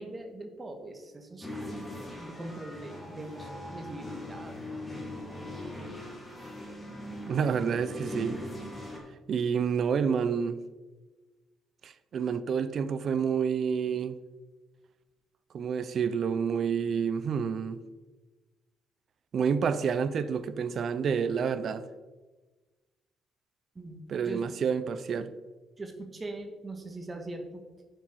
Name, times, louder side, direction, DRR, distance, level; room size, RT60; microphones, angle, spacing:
voice 1, 0.0-4.5 23.7-24.5 25.8-27.6, right 2 dB, 25° right, 1.5 m, -42 dB
sound 1, 1.4-9.0, left 1 dB, 15° left, 2.5 m, -40 dB
voice 2, 7.3-8.4 9.3-10.6 11.8-14.2 15.5-17.8 19.3-21.8 24.1-25.3, right 6 dB, 55° right, 0.5 m, -29 dB
11.0 x 6.1 x 4.7 m
cardioid pair, 110°, 0 cm